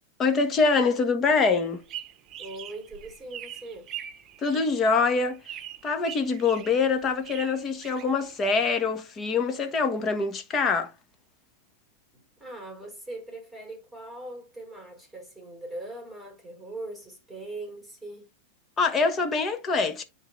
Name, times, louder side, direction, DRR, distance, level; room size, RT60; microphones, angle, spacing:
voice 1, 0.2-1.8 4.4-10.9 18.8-20.1, left 4 dB, 25° left, 1.5 m, -24 dB
sound 1, 1.6-8.7, right 11 dB, 35° right, 1.0 m, -43 dB
voice 2, 2.4-3.9 12.1-18.3, right 2 dB, ahead, 4.5 m, -41 dB
10.0 x 4.0 x 3.3 m
hypercardioid pair, 125°, 0 cm